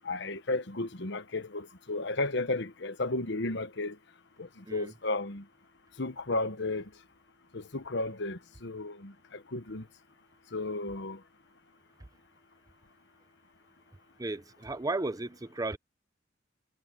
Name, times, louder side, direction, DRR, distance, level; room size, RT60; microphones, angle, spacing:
voice 1, 0.0-4.0 4.4-5.4 6.0-6.9 7.5-9.9 10.5-11.2, left 2 dB, 65° left, 1.2 m, -33 dB
voice 2, 14.2-15.8, right 2 dB, 20° right, 0.7 m, -34 dB
head